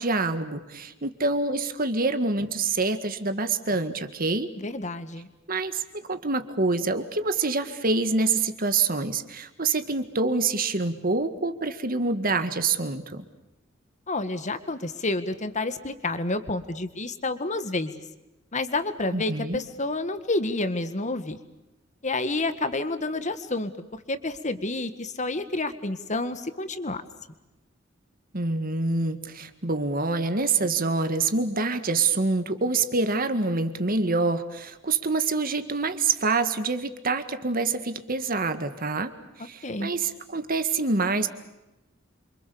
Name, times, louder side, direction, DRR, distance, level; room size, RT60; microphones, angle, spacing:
voice 1, 0.0-4.5 5.5-5.8 6.1-13.2 19.1-19.6 28.3-39.1 39.4-41.3, right 3 dB, 45° right, 9 dB, 1.9 m, -26 dB
voice 2, 4.6-5.3 14.1-18.0 18.5-21.4 22.0-27.0 39.6-39.9, left 2 dB, 40° left, 10 dB, 1.8 m, -29 dB
28.0 x 26.0 x 7.1 m, 0.99 s
head